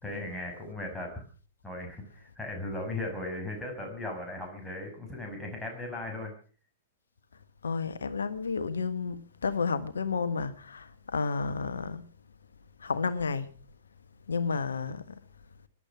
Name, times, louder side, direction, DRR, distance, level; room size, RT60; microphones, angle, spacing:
voice 1, 0.0-1.2 1.6-6.3, left 2 dB, 5° left, 6.3 m, -37 dB
voice 2, 7.6-12.0 12.8-13.5 14.3-15.2, left 4 dB, 70° left, 1.4 m, -31 dB
19.0 x 11.0 x 6.1 m
figure-of-eight pair, 105°, 0 cm